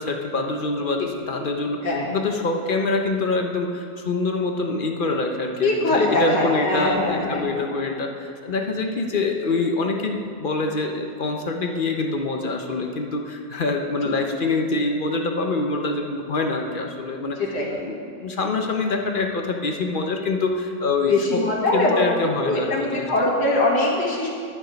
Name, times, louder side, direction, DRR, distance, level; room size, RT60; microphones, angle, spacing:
voice 1, 0.0-17.4 17.8-21.4 21.7-23.1, left 3 dB, 50° left, 3 dB, 0.6 m, -25 dB
voice 2, 5.6-7.5 14.0-14.1 17.4-17.7 21.1-24.3, left 2 dB, 90° left, -4 dB, 2.6 m, -22 dB
10.5 x 10.0 x 5.1 m, 2.4 s
omnidirectional pair, 1.8 m